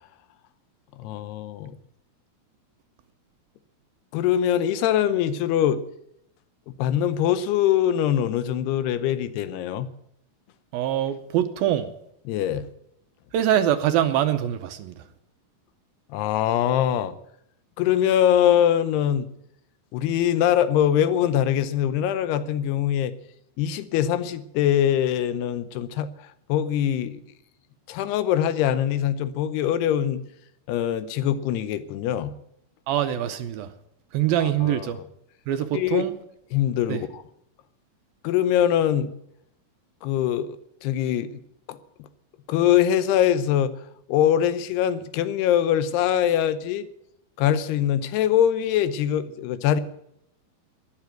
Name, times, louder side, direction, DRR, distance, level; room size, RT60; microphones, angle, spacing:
voice 1, 1.0-1.7 4.1-5.8 6.7-9.9 12.3-12.7 16.1-17.1 17.8-19.3 19.9-23.1 23.6-26.1 26.5-27.2 27.9-30.2 30.7-32.3 34.4-34.9 35.7-36.1 36.5-37.2 38.2-39.1 40.0-40.6 40.8-41.4 41.7-41.8 42.5-43.7 44.1-46.9 47.4-49.8, left 10 dB, 80° left, 2.8 m, -23 dB
voice 2, 10.7-11.9 13.3-14.9 32.9-33.7 34.1-35.0 35.5-36.1 36.9-37.0, right 11 dB, 75° right, 2.4 m, -24 dB
13.0 x 10.5 x 9.1 m
omnidirectional pair, 4.7 m